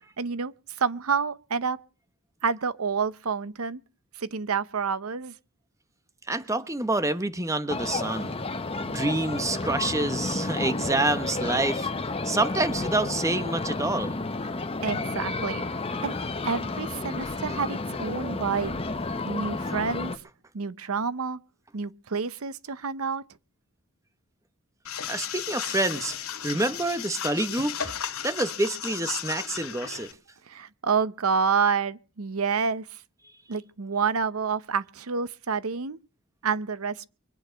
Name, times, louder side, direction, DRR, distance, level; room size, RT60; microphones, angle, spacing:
voice 1, 0.2-0.5 0.8-1.8 2.4-3.8 4.2-5.3 14.8-15.7 16.0-16.2 16.4-18.8 19.3-20.1 20.5-21.4 21.7-23.2 30.5-32.9 33.5-36.0 36.4-37.1, right 5 dB, 85° right, 0.8 m, -28 dB
voice 2, 6.3-8.4 8.8-11.9 12.2-14.2 25.1-26.1 26.4-27.9 28.2-30.1, right 2 dB, 15° right, 1.0 m, -27 dB
sound 1, 7.7-20.2, left 3 dB, 25° left, 1.1 m, -31 dB
sound 2, 24.8-30.1, left 9 dB, 80° left, 1.7 m, -35 dB
24.0 x 8.7 x 5.1 m
head